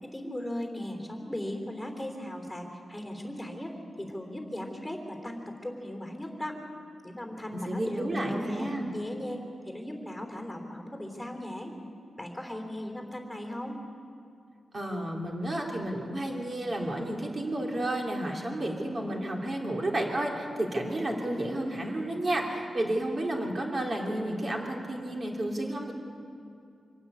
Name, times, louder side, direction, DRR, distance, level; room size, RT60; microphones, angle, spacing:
voice 1, 0.0-6.6 7.0-8.7 8.9-11.7 12.2-13.8, left 1 dB, 5° left, 3 dB, 3.2 m, -37 dB
voice 2, 7.5-8.9 14.7-25.9, right 1 dB, 35° right, 0 dB, 2.9 m, -31 dB
25.5 x 12.5 x 9.7 m, 2.5 s
wide cardioid pair, 140°, 0 cm